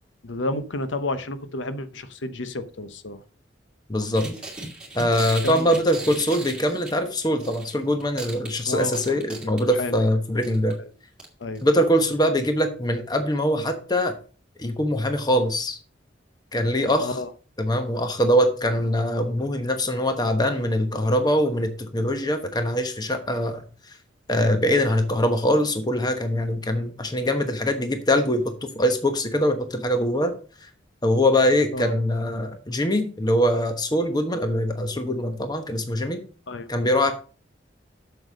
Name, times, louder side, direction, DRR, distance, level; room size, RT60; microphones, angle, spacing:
voice 1, 0.2-3.2 5.4-5.7 8.7-10.0 11.4-11.6 17.0-17.3 31.7-31.9 36.5-36.7, left 2 dB, 90° left, 0.9 m, -31 dB
voice 2, 3.9-4.2 4.9-10.8 11.6-14.1 14.6-15.8 16.5-17.2 17.6-23.6 23.9-24.0 24.3-30.3 30.6-30.7 31.0-36.2 36.7-37.1, equal, 20° left, 1.1 m, -23 dB
sound 1, 4.2-7.8 8.0-10.0 10.4-10.7 11.2-11.3 11.6-11.7, right 2 dB, 5° right, 2.4 m, -37 dB
7.8 x 7.0 x 5.1 m
head